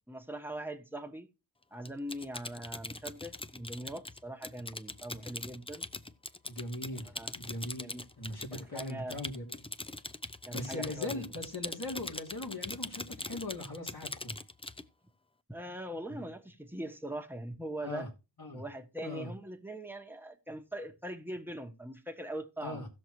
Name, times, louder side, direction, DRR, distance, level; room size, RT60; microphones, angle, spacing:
voice 1, 0.1-1.3 1.7-5.9 7.1-7.3 7.8-8.1 8.5-9.2 10.4-11.3 15.5-18.1 18.5-22.8, right 1 dB, 5° right, 1.1 m, -41 dB
Typing, 1.8-14.8, left 2 dB, 15° left, 0.4 m, -42 dB
voice 2, 6.5-9.6 10.5-14.4 17.8-18.1 18.4-18.6 19.0-19.3 22.6-22.9, left 2 dB, 60° left, 2.9 m, -40 dB
16.5 x 6.4 x 3.1 m
wide cardioid pair, 65°, 43 cm